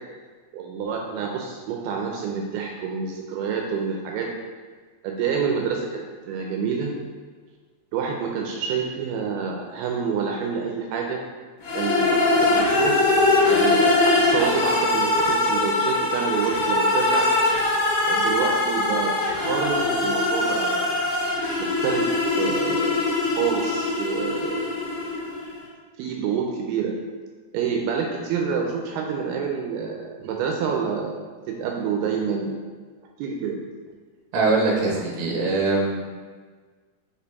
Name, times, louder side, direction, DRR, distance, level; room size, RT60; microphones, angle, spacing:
voice 1, 0.5-4.3 5.0-5.9 6.3-6.9 7.9-11.2 11.7-13.1 13.5-17.3 18.0-21.0 21.6-22.1 22.4-24.8 26.0-27.0 27.5-32.6 33.2-33.6, right 6 dB, 85° right, 0 dB, 2.5 m, -28 dB
sound 1, 11.6-25.5, left 2 dB, 70° left, 3.0 m, -22 dB
voice 2, 34.3-36.0, right 3 dB, 70° right, -2 dB, 2.4 m, -22 dB
5.7 x 4.3 x 4.0 m, 1.5 s
omnidirectional pair, 4.5 m